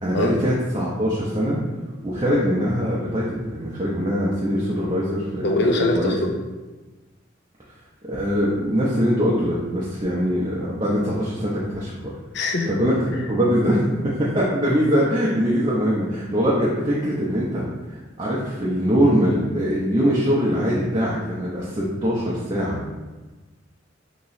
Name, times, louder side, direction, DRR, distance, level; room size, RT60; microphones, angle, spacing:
voice 1, 0.0-1.6 2.0-5.4 5.9-6.1 8.1-12.1 12.7-17.6 17.9-22.8, equal, 25° right, -6 dB, 0.5 m, -22 dB
voice 2, 5.4-6.3 12.3-12.8, left 2 dB, 60° left, 2 dB, 0.5 m, -22 dB
2.9 x 2.9 x 4.0 m, 1.2 s
head